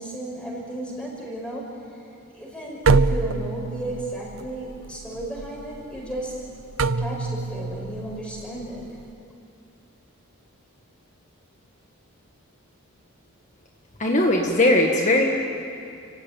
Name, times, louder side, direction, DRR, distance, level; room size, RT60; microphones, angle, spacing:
voice 1, 0.0-1.7 2.3-6.4 7.0-8.9, right 1 dB, 5° left, -3 dB, 5.7 m, -34 dB
sound 1, 2.8-9.1, right 4 dB, 65° right, 0.6 m, -26 dB
voice 2, 14.0-15.2, left 1 dB, 35° left, 0 dB, 1.7 m, -19 dB
29.5 x 16.5 x 9.1 m, 2.5 s
head